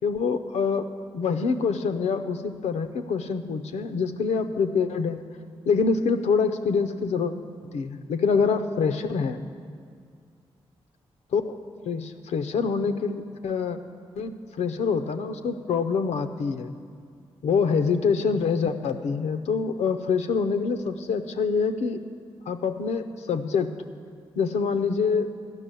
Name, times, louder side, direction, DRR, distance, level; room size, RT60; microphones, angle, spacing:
voice 1, 0.0-5.2 5.7-7.3 7.7-9.4 11.3-11.6 11.9-13.8 14.2-16.7 17.4-22.0 22.5-23.7 24.4-25.3, left 5 dB, 80° left, 8 dB, 0.6 m, -25 dB
11.5 x 6.0 x 9.0 m, 2.1 s
supercardioid pair, 45°, 12 cm